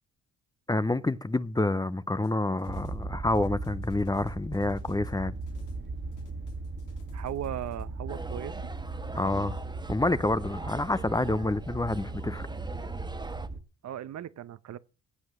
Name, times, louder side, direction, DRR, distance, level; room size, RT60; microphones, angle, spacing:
voice 1, 0.7-5.3 9.2-9.5 9.9-12.5, left 2 dB, 10° left, 0.7 m, -28 dB
sound 1, 2.2-3.0 3.3-5.9 6.1-7.8, left 7 dB, 85° left, 3.2 m, -58 dB
sound 2, 2.6-13.6, right 3 dB, 40° right, 1.9 m, -38 dB
voice 2, 7.1-8.5 13.8-14.8, right 11 dB, 65° right, 1.0 m, -37 dB
sound 3, 8.1-13.5, right 2 dB, 15° right, 1.3 m, -44 dB
16.0 x 7.9 x 6.3 m
cardioid pair, 90°, 30 cm